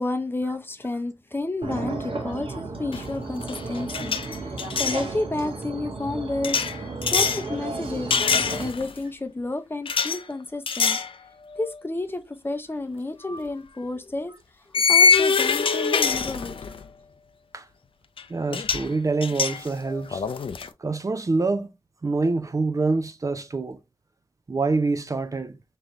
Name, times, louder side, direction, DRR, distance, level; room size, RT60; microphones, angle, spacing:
voice 1, 0.0-8.1 8.6-11.0 11.6-14.3 14.7-16.6, left 2 dB, 25° left, 0.6 m, -31 dB
sound 1, 1.6-8.7, right 3 dB, 80° right, 1.1 m, -33 dB
sound 2, 2.9-3.2 3.4-5.0 6.4-7.4 8.1-9.0 9.9-10.2 10.7-11.1 11.6-11.7 13.3-13.4 14.7-16.8 18.2-18.3 18.5-18.9 19.2-20.7, left 5 dB, 70° left, 0.5 m, -23 dB
voice 2, 18.3-20.2 20.8-21.7 22.0-23.8 24.5-25.5, right 3 dB, 35° right, 0.5 m, -26 dB
3.9 x 3.1 x 2.9 m
wide cardioid pair, 75°, 9 cm